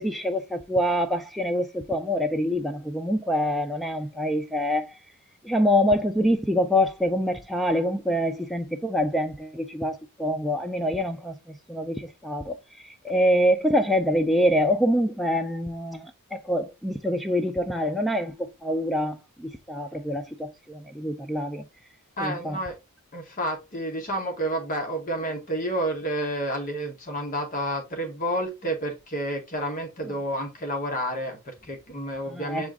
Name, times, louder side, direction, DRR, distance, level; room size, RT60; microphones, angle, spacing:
voice 1, 0.0-4.9 5.4-12.6 13.0-21.7 22.2-22.6 32.3-32.6, equal, ahead, 0.4 m, -25 dB
voice 2, 22.2-22.8 23.1-32.7, right 1 dB, 40° left, 0.9 m, -30 dB
6.0 x 2.4 x 3.5 m
head